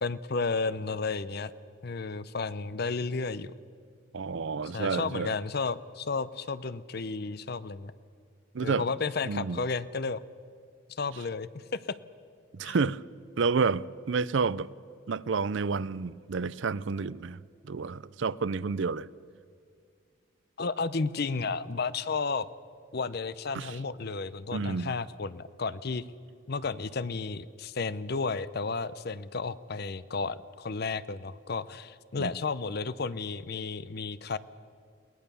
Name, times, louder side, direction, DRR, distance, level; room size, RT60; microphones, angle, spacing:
voice 1, 0.0-1.5 1.8-3.5 4.6-7.9 8.6-10.2 10.9-12.0 12.6-12.8 20.6-22.5 22.9-26.0 26.5-34.4, left 4 dB, 50° left, 0.6 m, -32 dB
voice 2, 4.1-5.3 8.5-8.8 9.2-9.6 12.5-13.0 13.4-14.7 15.1-17.4 17.6-19.1 23.5-23.7 24.5-24.9 32.2-32.3, right 4 dB, 60° right, 0.5 m, -30 dB
22.5 x 18.5 x 6.9 m
head